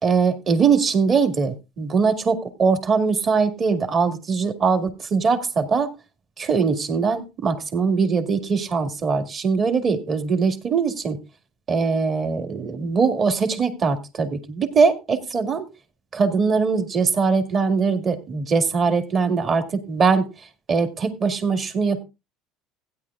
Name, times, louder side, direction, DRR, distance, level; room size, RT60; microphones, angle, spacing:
voice 1, 0.0-5.9 6.4-11.2 11.7-15.7 16.1-20.3 20.7-22.0, right 5 dB, 35° right, 6 dB, 2.0 m, -21 dB
16.0 x 9.9 x 2.4 m, 0.26 s
supercardioid pair, 110°, 0 cm